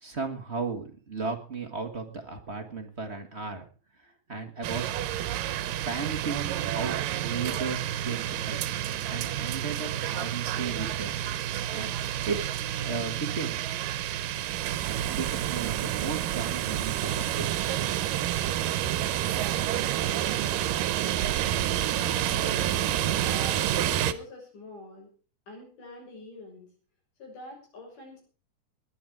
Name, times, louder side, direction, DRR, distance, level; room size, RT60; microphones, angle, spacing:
voice 1, 0.0-3.6 4.0-5.0 5.8-8.6 8.8-11.2 11.7-12.4 12.8-13.7 15.1-17.5 17.8-18.0, right 4 dB, 30° right, 3 dB, 1.4 m, -35 dB
sound 1, 4.6-24.1, right 12 dB, 85° right, 2.6 m, -29 dB
voice 2, 21.8-25.1 25.5-26.7 27.2-28.2, left 2 dB, 75° left, 1 dB, 7.7 m, -44 dB
21.5 x 9.5 x 4.9 m, 0.38 s
omnidirectional pair, 3.8 m